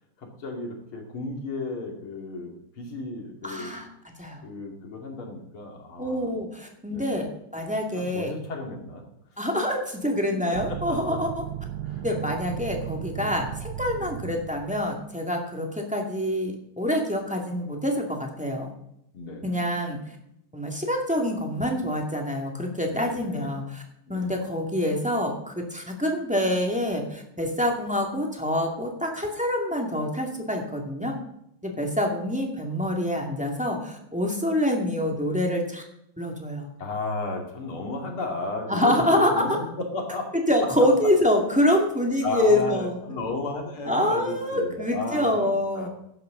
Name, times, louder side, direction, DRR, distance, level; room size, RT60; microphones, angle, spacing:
voice 1, 0.2-3.7 4.4-6.3 6.9-7.2 7.9-9.0 10.3-11.2 11.8-12.0 13.1-13.3 13.9-14.1 19.1-19.5 22.9-23.5 24.1-24.4 36.8-39.5 39.8-40.2 42.2-45.9, left 3 dB, 80° left, 1 dB, 3.4 m, -34 dB
voice 2, 3.4-4.5 6.0-8.3 9.4-11.3 12.0-18.7 19.4-20.0 20.5-23.8 24.1-31.2 31.6-35.8 36.2-36.7 38.7-39.4 40.5-43.0 43.9-45.9, left 1 dB, 5° right, 1 dB, 2.1 m, -26 dB
sound 1, 10.5-15.1, right 12 dB, 70° right, 1.0 m, -35 dB
15.0 x 11.5 x 3.9 m, 0.78 s
omnidirectional pair, 2.3 m